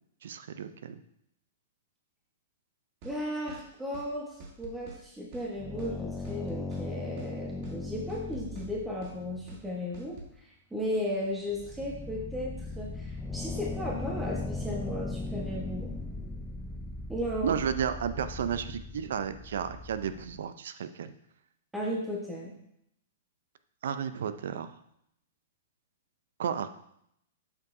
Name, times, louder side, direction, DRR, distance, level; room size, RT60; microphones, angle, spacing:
voice 1, 0.2-1.0 17.4-21.1 23.8-24.7 26.4-26.7, right 8 dB, 70° right, 11 dB, 0.5 m, -33 dB
voice 2, 3.0-4.3 4.6-10.2 10.7-15.9 17.1-17.5 21.7-22.5, left 1 dB, 5° right, -3 dB, 1.2 m, -35 dB
sound 1, 3.0-3.2 3.5-3.6 3.9-4.1 4.4-5.0 5.3-5.5 5.8-5.9 6.2-6.9 7.2-7.3 7.6-7.8 8.1-8.7 9.0-9.2 9.5-9.6 9.9-10.3, right 2 dB, 45° right, 1.2 m, -47 dB
sound 2, 5.3-9.8 10.8-10.9 11.3-20.4, left 2 dB, 15° left, 0.5 m, -38 dB
6.8 x 5.4 x 2.6 m, 0.74 s
hypercardioid pair, 125°, 0 cm